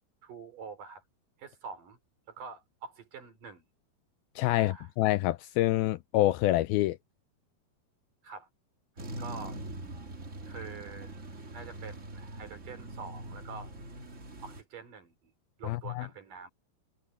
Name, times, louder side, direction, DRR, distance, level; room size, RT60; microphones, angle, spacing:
voice 1, 0.2-1.0 1.4-2.0 2.3-3.6 4.6-4.9 8.2-8.5 9.2-9.6 10.5-11.1 11.5-13.7 14.4-15.3 15.6-16.5, right 5 dB, 55° right, 5.6 m, -45 dB
voice 2, 4.4-7.0 15.6-16.0, left 16 dB, 80° left, 2.3 m, -27 dB
sound 1, 9.0-14.6, right 1 dB, 30° right, 1.4 m, -43 dB
omnidirectional pair, 4.6 m